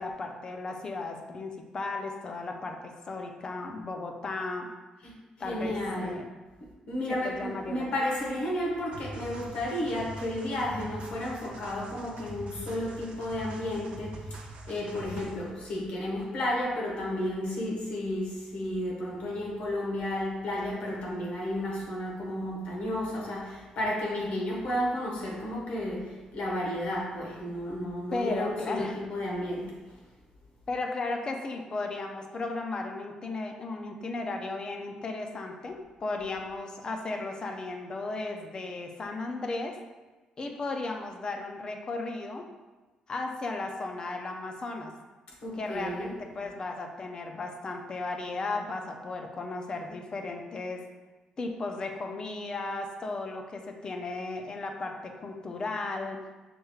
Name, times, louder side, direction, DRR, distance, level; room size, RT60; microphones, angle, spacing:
voice 1, 0.0-4.7 5.4-6.3 7.2-7.9 28.1-29.0 30.7-39.8 40.4-42.5 43.1-44.9 45.6-50.8 51.4-56.2, left 3 dB, 35° left, 4 dB, 0.5 m, -35 dB
voice 2, 5.4-6.2 6.9-29.7 45.4-46.1, left 1 dB, 65° left, -3 dB, 1.3 m, -32 dB
sound 1, 8.9-15.5, right 2 dB, 60° right, 0.6 m, -43 dB
6.0 x 3.1 x 2.3 m, 1.2 s
cardioid pair, 105°, 2 cm